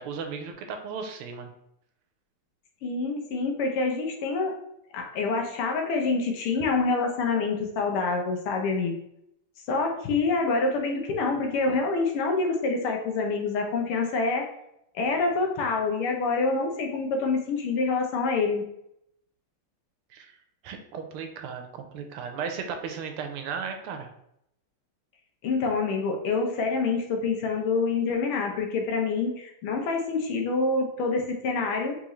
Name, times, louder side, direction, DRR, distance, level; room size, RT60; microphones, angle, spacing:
voice 1, 0.0-1.5 20.1-20.4 20.6-24.1, right 6 dB, 90° right, 5 dB, 1.5 m, -35 dB
voice 2, 2.8-4.6 4.9-8.9 9.7-14.5 14.9-18.6 25.4-32.0, left 4 dB, 85° left, 2 dB, 1.7 m, -26 dB
4.0 x 3.7 x 3.0 m, 0.78 s
omnidirectional pair, 2.4 m